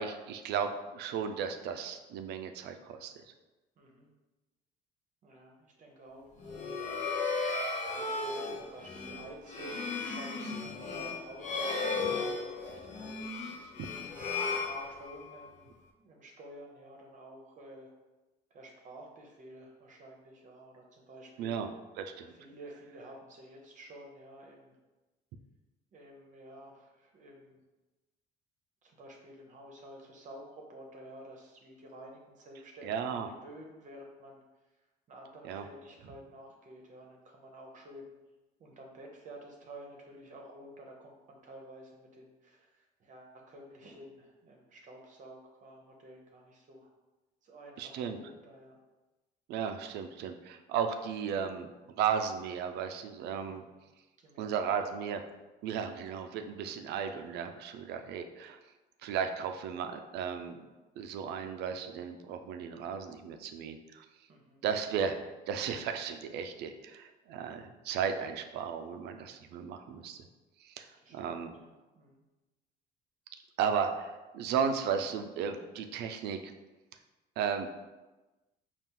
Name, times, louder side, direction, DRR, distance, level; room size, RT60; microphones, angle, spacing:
voice 1, 0.0-3.1 13.8-13.9 21.4-21.7 22.0-22.3 32.8-33.3 35.4-35.6 47.8-48.2 49.5-51.7 52.0-53.6 54.4-55.2 55.6-58.6 59.0-60.7 61.0-64.0 64.6-70.2 70.6-70.9 71.1-71.5 73.6-76.4 77.4-77.7, right 7 dB, 80° right, 7 dB, 0.4 m, -35 dB
voice 2, 3.8-4.1 5.2-6.6 7.7-13.7 14.5-17.9 18.5-21.6 22.3-24.8 25.9-27.6 28.8-34.4 35.1-38.1 38.6-46.9 47.4-48.8 53.5-53.8 54.2-54.8 55.9-56.1 64.3-64.6 71.0-72.2, right 1 dB, 50° right, 0 dB, 0.7 m, -51 dB
sound 1, 6.4-15.4, left 3 dB, 45° left, 0.7 m, -35 dB
4.3 x 2.4 x 3.6 m, 1.1 s
cardioid pair, 110°, 17 cm